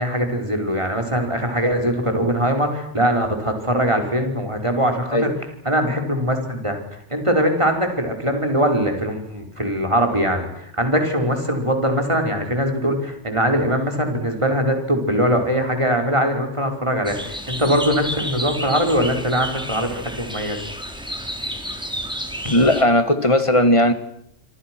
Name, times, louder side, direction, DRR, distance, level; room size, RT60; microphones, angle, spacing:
voice 1, 0.0-5.3 5.6-20.6 22.4-22.5, equal, 25° right, 4.9 m, -21 dB
sound 1, 17.0-22.8, equal, 5° right, 3.2 m, -31 dB
voice 2, 22.5-23.9, left 1 dB, 25° left, 2.2 m, -16 dB
27.0 x 27.0 x 6.2 m
omnidirectional pair, 1.2 m